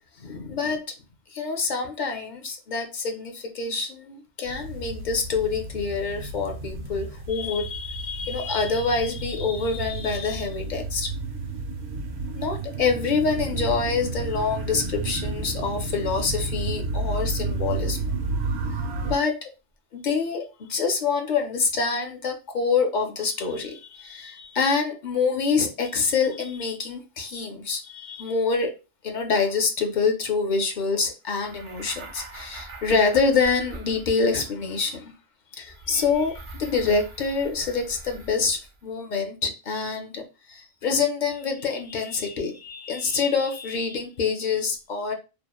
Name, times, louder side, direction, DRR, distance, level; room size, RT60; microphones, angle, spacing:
voice 1, 0.2-0.8 1.3-11.1 12.3-18.0 19.0-19.5 19.9-28.7 29.0-35.1 35.5-40.2 40.5-45.1, left 4 dB, 55° left, 0.6 m, -26 dB
sound 1, 4.4-19.2, right 3 dB, 85° right, 0.8 m, -31 dB
sound 2, 31.3-34.6 35.6-38.8, right 2 dB, 50° right, 0.4 m, -43 dB
2.9 x 2.1 x 2.2 m
omnidirectional pair, 1.1 m